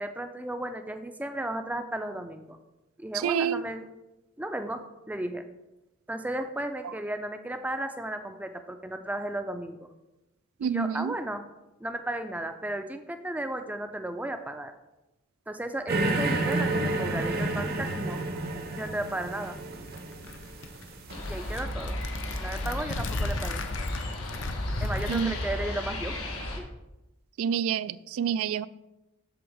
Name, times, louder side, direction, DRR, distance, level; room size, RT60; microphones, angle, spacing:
voice 1, 0.0-2.6 3.0-3.9 4.4-5.4 6.1-9.9 10.6-11.5 11.8-14.7 15.5-18.2 18.8-19.6 21.3-22.0 22.4-23.6 24.8-26.2 26.5-26.6, right 1 dB, 5° right, 0.4 m, -34 dB
voice 2, 3.2-3.6 10.6-11.1 25.1-25.4 27.4-28.7, right 7 dB, 70° right, 0.3 m, -28 dB
sound 1, 15.9-21.5, right 2 dB, 45° right, 0.8 m, -30 dB
sound 2, 19.5-25.6, left 2 dB, 60° left, 0.6 m, -35 dB
sound 3, 21.1-26.6, left 1 dB, 85° left, 1.3 m, -35 dB
7.9 x 3.5 x 6.5 m
head